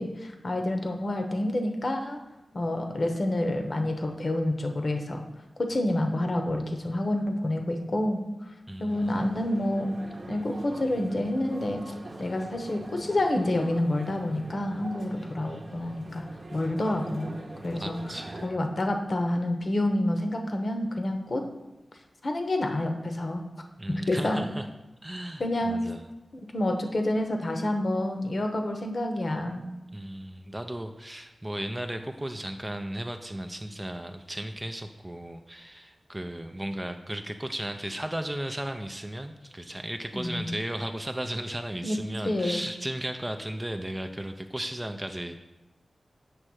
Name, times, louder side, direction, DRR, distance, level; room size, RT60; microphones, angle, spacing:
voice 1, 0.0-2.2 2.5-5.3 5.6-8.2 8.8-10.0 10.3-11.9 12.2-16.2 16.5-17.3 17.6-18.0 18.4-21.4 22.2-23.4 24.1-24.4 25.4-25.8 26.3-29.7 40.1-40.6 41.8-42.0 42.2-42.7, left 1 dB, 50° left, 4 dB, 0.9 m, -28 dB
voice 2, 8.7-9.3 17.7-18.5 23.8-24.7 25.0-26.1 29.9-45.4, right 1 dB, 15° right, 6 dB, 0.4 m, -35 dB
sound 1, 8.9-18.5, right 2 dB, 45° right, 0.8 m, -43 dB
7.6 x 3.2 x 6.2 m, 1.0 s
wide cardioid pair, 100°, 0 cm